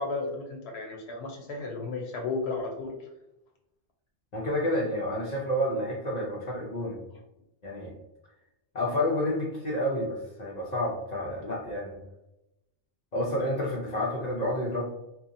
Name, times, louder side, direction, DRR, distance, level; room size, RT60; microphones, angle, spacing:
voice 1, 0.0-3.1, left 3 dB, 85° left, 1 dB, 0.8 m, -34 dB
voice 2, 4.3-7.0 7.6-7.9 8.7-12.0 13.1-14.8, left 1 dB, 55° left, -4 dB, 0.5 m, -29 dB
2.8 x 2.2 x 2.5 m, 0.93 s
omnidirectional pair, 1.1 m